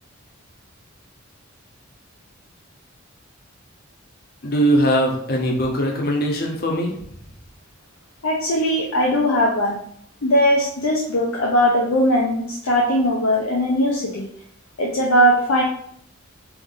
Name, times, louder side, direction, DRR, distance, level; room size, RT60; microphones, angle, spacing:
voice 1, 4.4-7.0, equal, 45° left, 0 dB, 0.7 m, -20 dB
voice 2, 8.2-9.8 10.2-14.3 14.8-15.6, equal, 85° left, -3 dB, 0.6 m, -19 dB
3.5 x 2.6 x 3.6 m, 0.67 s
head